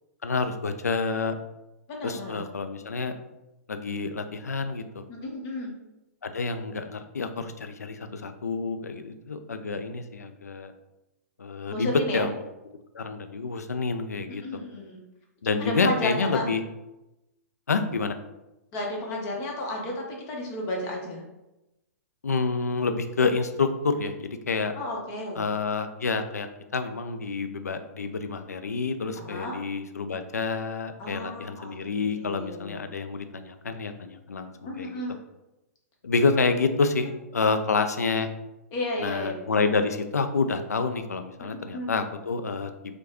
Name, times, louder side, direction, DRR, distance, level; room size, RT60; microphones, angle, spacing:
voice 1, 0.2-1.3 2.0-3.2 3.7-5.0 6.2-10.7 11.4-12.3 12.9-14.6 15.4-16.6 17.7-18.1 22.2-24.7 25.4-35.0 36.0-38.3 39.0-42.7, left 4 dB, 80° left, 8 dB, 0.4 m, -28 dB
voice 2, 1.9-2.4 5.1-5.7 11.7-12.3 14.4-15.0 15.6-16.4 18.7-21.2 24.7-25.4 29.2-29.6 31.0-32.8 34.6-35.1 38.7-39.4 41.4-41.9, left 1 dB, 35° left, 0 dB, 0.9 m, -32 dB
4.6 x 2.2 x 2.9 m, 0.97 s
figure-of-eight pair, 115°, 9 cm